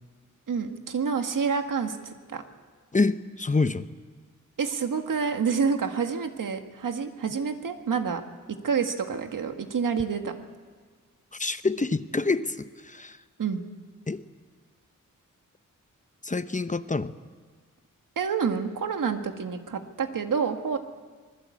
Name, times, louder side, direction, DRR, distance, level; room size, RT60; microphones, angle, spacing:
voice 1, 0.5-2.4 4.6-8.2 8.6-10.3 13.4-13.6 18.2-20.8, right 6 dB, 85° right, 6 dB, 1.9 m, -28 dB
voice 2, 2.9-3.9 11.3-13.2 14.1-14.2 16.2-17.2, left 3 dB, 25° left, 11 dB, 0.8 m, -27 dB
25.5 x 20.5 x 8.6 m, 1.5 s
wide cardioid pair, 100°, 32 cm